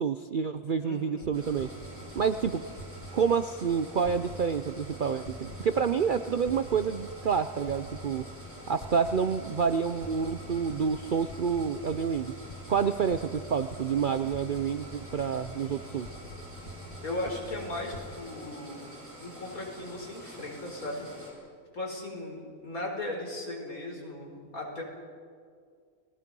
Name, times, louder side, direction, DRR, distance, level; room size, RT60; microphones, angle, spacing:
voice 1, 0.0-1.7 2.2-2.6 3.1-8.2 8.7-12.3 12.7-16.1, right 6 dB, 50° right, 10 dB, 0.6 m, -28 dB
voice 2, 0.8-1.3 17.0-18.8 19.2-21.1 21.7-24.8, left 2 dB, 80° left, -1 dB, 4.9 m, -37 dB
sound 1, 1.2-18.0, equal, 35° left, 1.9 m, -46 dB
sound 2, 1.3-21.3, equal, 10° right, 5.3 m, -47 dB
29.5 x 19.5 x 5.4 m, 2.1 s
omnidirectional pair, 1.5 m